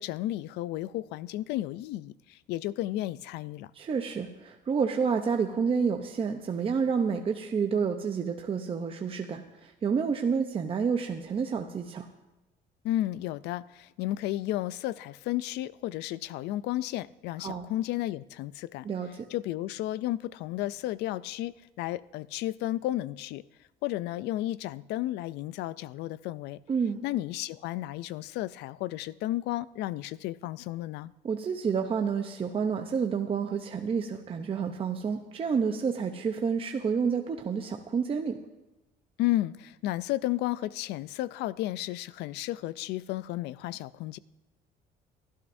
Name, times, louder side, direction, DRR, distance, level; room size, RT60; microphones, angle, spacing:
voice 1, 0.0-3.7 12.8-18.9 19.3-23.4 23.8-26.6 27.0-31.1 39.2-44.2, left 15 dB, 85° left, 0.4 m, -33 dB
voice 2, 3.7-12.1 17.4-17.7 18.8-19.3 26.7-27.0 31.2-38.4, right 6 dB, 35° right, 0.7 m, -29 dB
23.5 x 12.0 x 2.6 m
cardioid pair, 110°, 17 cm